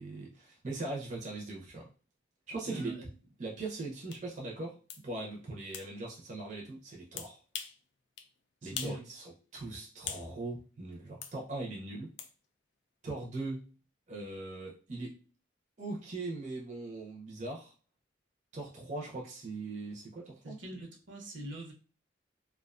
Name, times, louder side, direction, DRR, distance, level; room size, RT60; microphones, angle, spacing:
voice 1, 0.0-1.9 2.5-2.9 3.4-4.8 5.0-7.4 8.6-12.1 13.0-13.7 14.1-15.1 15.8-17.7 18.5-20.6, right 2 dB, 40° right, -2 dB, 0.5 m, -40 dB
voice 2, 2.6-3.1 8.6-9.0 20.4-21.7, right 1 dB, 75° right, 1 dB, 0.8 m, -43 dB
sound 1, 4.1-4.2 4.9-5.0 5.7-5.9 7.2-7.8 8.2-8.3 8.8-9.0 9.4-10.3 11.2-11.4 12.2-12.3, left 7 dB, 65° left, 0.3 m, -41 dB
2.4 x 2.2 x 2.4 m, 0.35 s
head